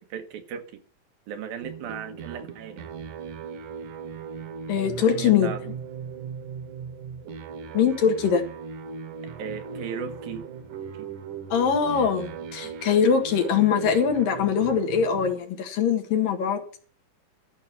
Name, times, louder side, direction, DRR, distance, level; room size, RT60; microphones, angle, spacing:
voice 1, 0.1-0.8 1.3-2.9 5.0-5.6 9.4-10.5 10.9-11.1, right 7 dB, 85° right, 7 dB, 3.2 m, -36 dB
sound 1, 1.6-15.4, right 6 dB, 65° right, 2.5 m, -38 dB
voice 2, 4.7-5.5 7.7-8.4 11.5-16.6, left 7 dB, 70° left, 4 dB, 3.5 m, -22 dB
13.0 x 6.4 x 7.4 m, 0.43 s
omnidirectional pair, 4.1 m